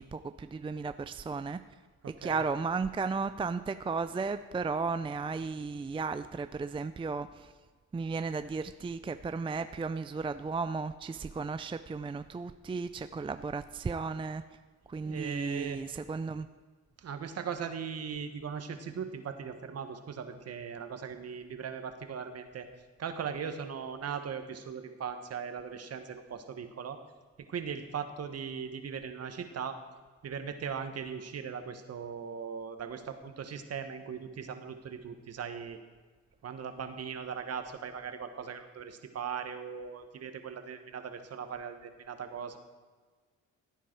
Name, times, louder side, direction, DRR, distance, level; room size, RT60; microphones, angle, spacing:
voice 1, 0.0-1.6 2.2-7.5 7.9-14.4 14.9-16.5, right 4 dB, 15° right, 11 dB, 0.4 m, -34 dB
voice 2, 2.0-2.5 15.0-15.8 17.0-22.7 23.0-27.0 27.5-29.8 30.2-35.8 36.4-42.6, right 7 dB, 55° right, 8 dB, 1.5 m, -39 dB
16.0 x 9.2 x 4.6 m, 1.4 s
cardioid pair, 90°, 30 cm